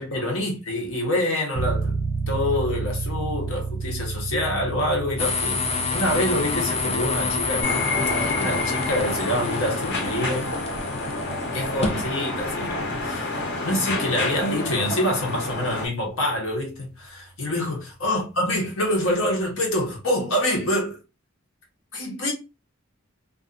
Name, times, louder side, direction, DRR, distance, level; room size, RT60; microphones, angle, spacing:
voice 1, 0.0-2.0 2.3-7.7 8.2-10.6 11.5-21.0 21.9-22.3, left 1 dB, 80° left, 0.9 m, -26 dB
sound 1, 1.5-16.0, right 4 dB, 45° right, 0.3 m, -33 dB
sound 2, 5.2-12.0, left 4 dB, 30° left, 0.4 m, -28 dB
sound 3, 7.6-15.9, left 2 dB, 55° left, 0.8 m, -28 dB
2.4 x 2.3 x 2.4 m
head